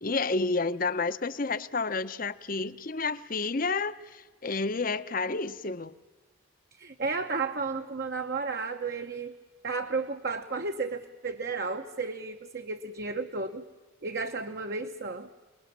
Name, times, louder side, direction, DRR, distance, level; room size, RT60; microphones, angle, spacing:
voice 1, 0.0-5.9, left 3 dB, 40° left, 13 dB, 0.8 m, -30 dB
voice 2, 6.7-9.4 9.6-13.6 14.0-15.3, right 4 dB, 50° right, 5 dB, 1.0 m, -33 dB
28.5 x 20.5 x 7.4 m, 1.3 s
head